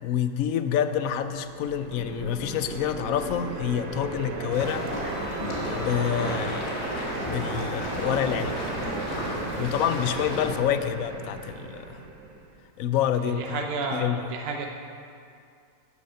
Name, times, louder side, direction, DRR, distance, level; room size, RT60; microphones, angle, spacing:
voice 1, 0.0-4.9 5.5-6.9 7.2-8.6 9.6-12.0 12.8-14.2, left 9 dB, 70° left, 10 dB, 0.9 m, -28 dB
sound 1, 1.2-12.5, right 4 dB, 90° right, 1.4 m, -36 dB
sound 2, 1.9-6.9, equal, 10° right, 1.4 m, -41 dB
sound 3, 4.5-10.5, left 1 dB, 45° left, 1.8 m, -33 dB
voice 2, 13.2-14.7, right 4 dB, 55° right, 2 dB, 0.7 m, -31 dB
11.0 x 6.4 x 5.6 m, 2.4 s
omnidirectional pair, 1.6 m